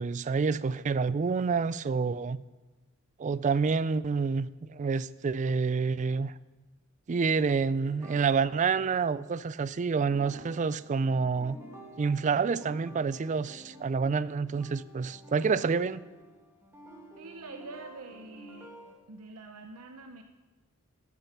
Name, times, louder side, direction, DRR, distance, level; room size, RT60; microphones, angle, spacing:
voice 1, 0.0-2.4 3.2-6.3 7.1-11.6 12.0-16.0, right 5 dB, 35° right, 17 dB, 0.3 m, -28 dB
sound 1, 7.8-9.6 10.0-18.9, right 1 dB, 10° right, 2.0 m, -50 dB
voice 2, 17.2-18.7 19.1-20.2, right 3 dB, 85° right, 6 dB, 0.8 m, -45 dB
14.5 x 8.4 x 5.9 m, 1.2 s
head